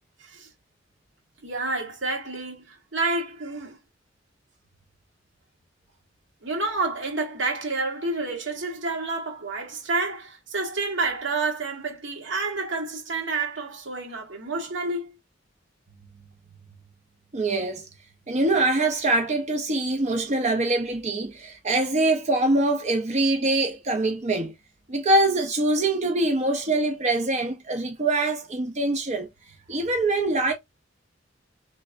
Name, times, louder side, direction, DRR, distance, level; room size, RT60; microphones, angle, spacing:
voice 1, 1.4-3.8 6.4-15.1, right 3 dB, 70° right, 1.3 m, -29 dB
voice 2, 17.3-17.9 18.3-24.5 24.9-29.3 29.7-30.5, right 2 dB, 35° right, 0.6 m, -24 dB
3.3 x 3.2 x 2.5 m
head